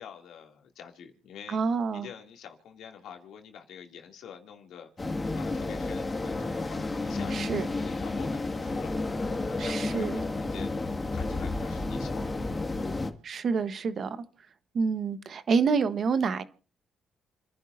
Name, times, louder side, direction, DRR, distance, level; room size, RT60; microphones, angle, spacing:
voice 1, 0.0-1.6 1.9-12.7, left 8 dB, 80° left, 2.6 m, -47 dB
voice 2, 1.5-2.1 7.3-7.7 9.6-10.2 13.2-14.2 14.7-16.4, right 5 dB, 55° right, 1.2 m, -27 dB
sound 1, 5.0-13.1, left 2 dB, 25° left, 2.0 m, -31 dB
29.5 x 11.0 x 2.7 m
cardioid pair, 90°, 0 cm